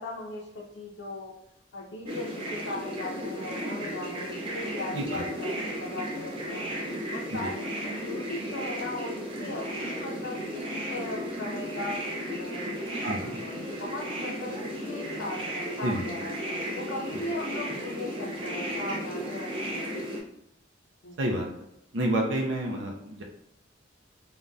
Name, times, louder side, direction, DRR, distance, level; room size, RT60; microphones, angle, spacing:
voice 1, 0.0-1.3 1.7-6.6 7.1-12.7 13.2-16.3 16.7-20.0 21.0-21.4, left 2 dB, 70° left, -4 dB, 0.5 m, -38 dB
sound 1, 2.1-20.2, equal, 30° right, 0.5 m, -34 dB
voice 2, 13.0-13.4 15.8-16.1 21.2-21.5 21.9-23.2, right 1 dB, 75° right, 0 dB, 0.5 m, -29 dB
3.4 x 2.2 x 2.5 m, 0.80 s
head